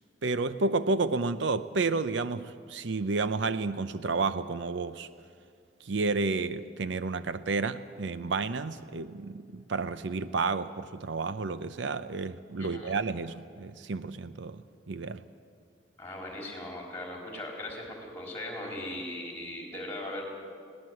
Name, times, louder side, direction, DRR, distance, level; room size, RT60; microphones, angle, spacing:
voice 1, 0.2-5.1 5.8-15.2, right 3 dB, 70° right, 0.6 m, -31 dB
voice 2, 12.6-12.9 16.0-20.2, left 1 dB, 10° left, 4.1 m, -39 dB
21.0 x 17.5 x 7.7 m
head